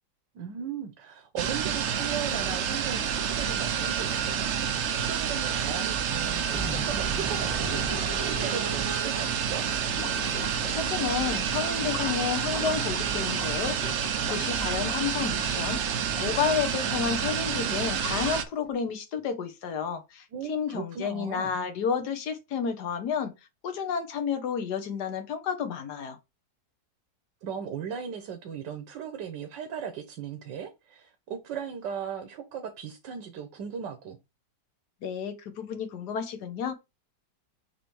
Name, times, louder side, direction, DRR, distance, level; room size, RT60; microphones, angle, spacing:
voice 1, 0.3-4.5 5.1-9.7 20.3-21.5 27.4-34.2, right 7 dB, 85° right, 1.7 m, -37 dB
sound 1, 1.4-18.4, right 8 dB, 60° right, 0.7 m, -29 dB
sound 2, 6.5-10.5, right 3 dB, 5° right, 1.1 m, -36 dB
sound 3, 9.8-18.7, left 6 dB, 85° left, 1.6 m, -42 dB
voice 2, 10.7-23.3 23.6-26.2 35.0-36.7, left 7 dB, 70° left, 1.6 m, -31 dB
6.6 x 3.2 x 4.7 m
omnidirectional pair, 1.9 m